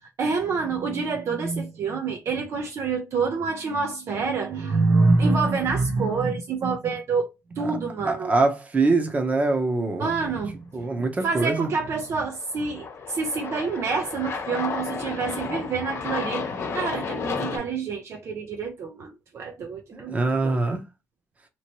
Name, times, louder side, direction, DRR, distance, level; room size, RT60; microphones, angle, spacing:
voice 1, 0.2-7.3 7.6-8.3 10.0-10.6 11.2-20.6, right 4 dB, 50° right, 0.6 m, -26 dB
voice 2, 8.0-10.1 10.7-11.7 19.9-20.8, right 3 dB, 25° right, 0.9 m, -24 dB
Aircraft, 11.8-17.6, left 5 dB, 50° left, 0.9 m, -32 dB
3.0 x 2.8 x 2.9 m
cardioid pair, 105°, 6 cm